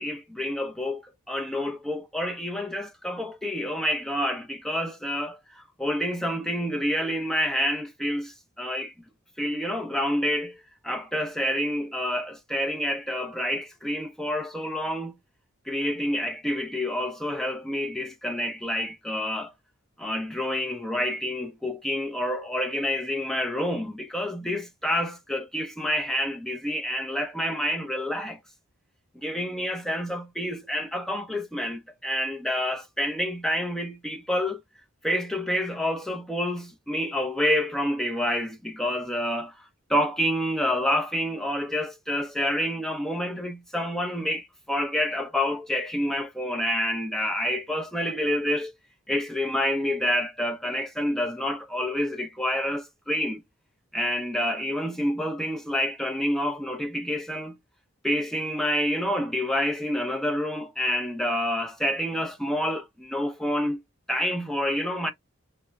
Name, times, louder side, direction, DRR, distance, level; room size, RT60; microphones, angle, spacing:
voice 1, 0.0-8.9 9.4-15.2 15.7-19.5 20.0-28.4 29.2-34.6 35.0-48.7 49.1-53.4 53.9-57.6 58.0-63.8 64.1-65.1, left 1 dB, ahead, 0.4 m, -28 dB
3.5 x 2.0 x 3.2 m
head